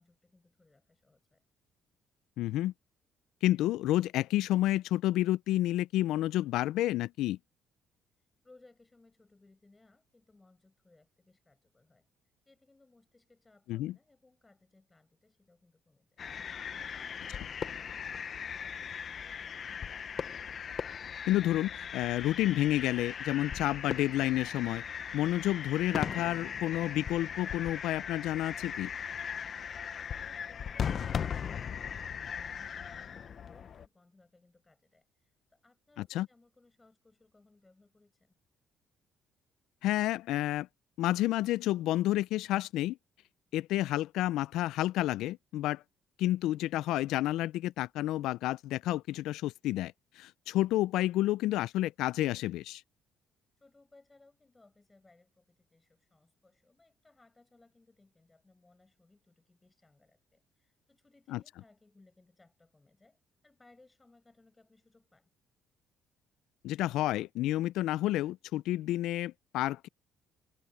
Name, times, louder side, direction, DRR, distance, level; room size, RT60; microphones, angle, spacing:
voice 1, 0.0-1.4 8.4-12.1 12.5-19.8 29.8-38.4 53.6-65.3, left 2 dB, 10° left, 7.7 m, -64 dB
voice 2, 2.4-2.7 3.4-7.4 13.7-14.0 21.3-24.8 25.1-28.9 36.1-36.3 39.8-40.7 41.0-43.0 43.5-45.8 46.2-52.8 61.3-61.4 66.6-69.9, left 15 dB, 90° left, 0.3 m, -30 dB
sound 1, 16.2-33.9, left 7 dB, 35° left, 0.7 m, -38 dB
cardioid pair, 170°, 0 cm